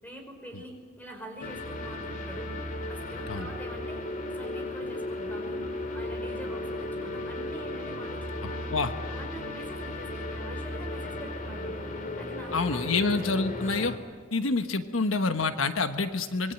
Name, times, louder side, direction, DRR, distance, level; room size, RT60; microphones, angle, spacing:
voice 1, 0.0-2.5 2.9-4.0 4.3-8.7 9.1-11.8 12.2-13.3, equal, 10° left, 3 dB, 5.5 m, -45 dB
sound 1, 1.4-14.0, left 1 dB, 45° left, 2.6 m, -35 dB
voice 2, 8.4-8.9 12.5-13.9 14.3-16.5, left 3 dB, 90° left, 8 dB, 1.3 m, -27 dB
25.5 x 22.5 x 9.2 m, 1.5 s
head